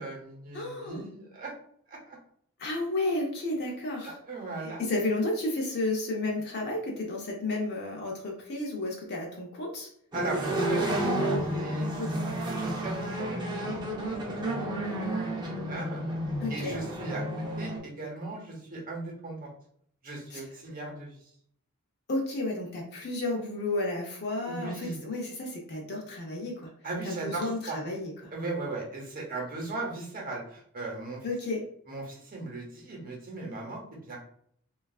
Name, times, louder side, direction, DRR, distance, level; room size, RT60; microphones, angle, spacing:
voice 1, 0.0-1.5 1.9-2.2 4.0-4.9 10.1-13.8 14.1-15.2 15.5-16.0 16.5-19.5 20.0-21.2 24.4-25.0 26.8-27.8 28.3-31.3 31.9-34.2, right 3 dB, 40° right, 0 dB, 0.8 m, -38 dB
voice 2, 0.5-1.0 2.6-4.2 4.6-9.9 12.0-12.2 16.4-16.8 20.3-20.4 22.1-26.7 27.0-28.3 31.2-31.6, left 2 dB, 50° left, -1 dB, 0.6 m, -32 dB
sound 1, 10.1-17.8, right 1 dB, 20° right, 0.5 m, -31 dB
3.1 x 2.3 x 2.3 m, 0.65 s
head